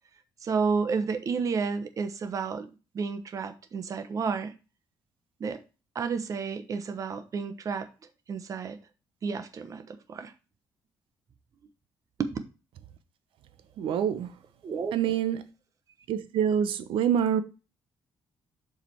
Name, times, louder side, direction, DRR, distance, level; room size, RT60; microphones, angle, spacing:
voice 1, 0.4-2.7 2.9-4.5 5.4-5.6 5.9-7.9 8.3-8.8 9.2-10.3 12.2-12.4 14.6-14.9, right 5 dB, 40° right, 1.0 m, -31 dB
voice 2, 13.8-14.3 14.9-15.4 16.1-17.4, right 8 dB, 75° right, 0.9 m, -26 dB
7.4 x 5.0 x 4.5 m
cardioid pair, 155°, 9 cm